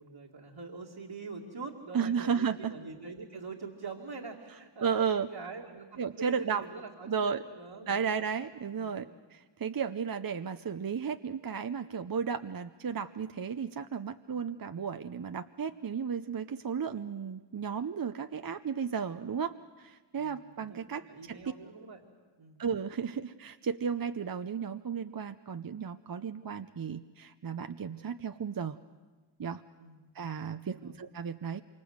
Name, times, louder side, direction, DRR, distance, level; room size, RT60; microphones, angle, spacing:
voice 1, 0.0-8.1 8.7-9.1 14.3-14.6 20.2-22.0 22.4-22.6 29.8-30.1 30.6-31.0, right 4 dB, 65° right, -2 dB, 2.4 m, -44 dB
voice 2, 1.9-2.7 4.8-5.3 6.0-6.6 7.1-7.4 7.9-9.1 9.3-21.4 22.6-28.8 29.4-29.6 30.1-31.6, right 6 dB, 45° right, 9 dB, 0.8 m, -34 dB
26.5 x 25.0 x 8.0 m, 1.3 s
cardioid pair, 50°, 48 cm